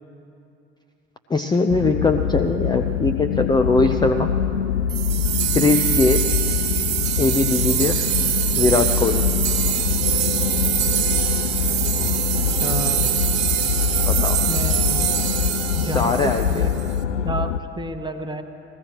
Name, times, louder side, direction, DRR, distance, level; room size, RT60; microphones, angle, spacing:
voice 1, 1.3-4.3 5.5-6.3 7.2-8.1 8.6-9.3 14.1-14.4 15.9-16.7, left 3 dB, 15° left, 6 dB, 0.5 m, -20 dB
sound 1, 1.7-17.6, left 8 dB, 80° left, 0.5 m, -24 dB
sound 2, 4.9-16.9, right 12 dB, 50° right, 0.9 m, -24 dB
voice 2, 12.5-13.1 14.2-15.0 15.7-16.7 17.2-18.4, right 2 dB, 15° right, 7 dB, 1.1 m, -30 dB
20.5 x 15.5 x 3.0 m, 2.8 s
figure-of-eight pair, 65°, 34 cm